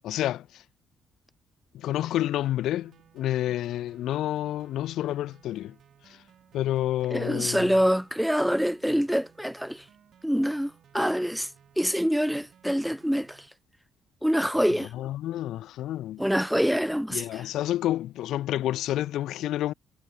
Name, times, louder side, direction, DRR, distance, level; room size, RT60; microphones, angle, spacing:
voice 1, 0.0-0.6 1.7-5.8 6.1-6.2 6.5-7.7 14.8-16.2 17.1-19.7, left 13 dB, 80° left, 0.7 m, -29 dB
sound 1, 2.0-13.5, right 9 dB, 60° right, 5.2 m, -59 dB
voice 2, 7.1-9.8 10.2-11.5 11.8-13.5 14.2-14.9 16.2-17.2, equal, ahead, 0.4 m, -25 dB
cardioid pair, 90°, 0 cm